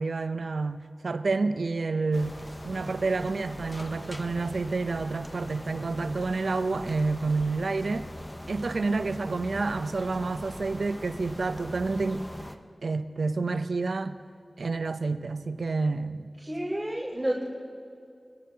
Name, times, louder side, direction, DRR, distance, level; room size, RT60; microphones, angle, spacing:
voice 1, 0.0-8.1 8.5-12.2 12.8-14.2 14.6-16.3, right 3 dB, 85° right, 10 dB, 0.6 m, -29 dB
sound 1, 2.1-12.6, left 1 dB, 20° left, 0.8 m, -42 dB
voice 2, 16.4-17.4, right 1 dB, 10° right, -7 dB, 2.9 m, -30 dB
22.0 x 13.5 x 2.8 m, 2.4 s
wide cardioid pair, 65°, 0 cm